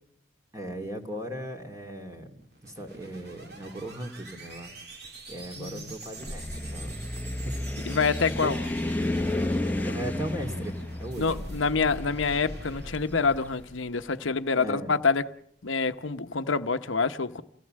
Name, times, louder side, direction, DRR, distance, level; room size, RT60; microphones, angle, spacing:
voice 1, 0.5-4.7 5.3-7.0 7.3-7.6 7.8-8.0 8.4-8.5 9.8-11.5 14.6-14.9, right 1 dB, 15° right, 2.5 m, -38 dB
sound 1, 2.4-14.8, right 1 dB, 55° right, 3.0 m, -45 dB
voice 2, 5.6-5.9 7.9-8.6 11.2-15.3 15.6-17.4, left 4 dB, 80° left, 0.9 m, -27 dB
sound 2, 6.2-13.3, left 1 dB, 10° left, 0.9 m, -32 dB
28.5 x 17.5 x 7.6 m
head